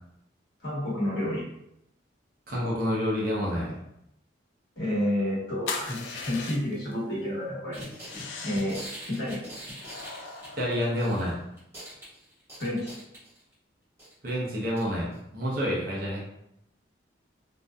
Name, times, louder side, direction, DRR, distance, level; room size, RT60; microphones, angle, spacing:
voice 1, 0.6-1.4 4.8-7.8 8.4-8.8 9.1-9.4 12.6-13.0, left 1 dB, 60° left, -6 dB, 1.0 m, -29 dB
voice 2, 2.5-3.8 10.5-11.4 14.2-16.2, equal, 50° right, -4 dB, 0.7 m, -28 dB
sound 1, 5.7-6.9 8.0-8.9 9.8-11.5, left 4 dB, 75° left, 0.3 m, -39 dB
sound 2, 7.7-11.3 11.6-13.5 14.0-14.3 14.8-14.9 15.1-15.2, equal, 10° right, 0.8 m, -43 dB
2.6 x 2.2 x 2.2 m, 0.80 s
head